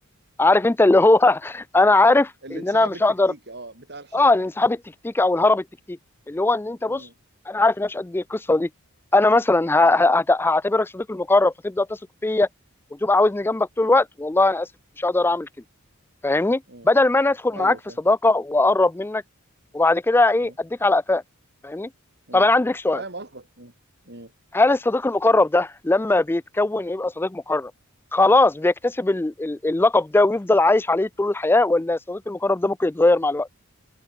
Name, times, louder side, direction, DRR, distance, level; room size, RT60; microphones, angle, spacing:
voice 1, 0.4-3.3 4.1-4.8 5.0-6.0 6.3-7.1 7.5-8.7 9.1-12.5 13.0-14.7 15.0-15.5 16.2-17.8 18.1-19.2 19.7-21.2 21.6-21.9 22.3-23.0 24.5-27.7 28.1-33.5, left 2 dB, 10° left, 0.3 m, -20 dB
voice 2, 2.4-4.3 6.9-7.1 9.8-10.0 16.7-16.9 17.5-18.0 20.4-20.5 22.3-23.7 24.1-24.3, right 2 dB, 50° right, 5.6 m, -40 dB
head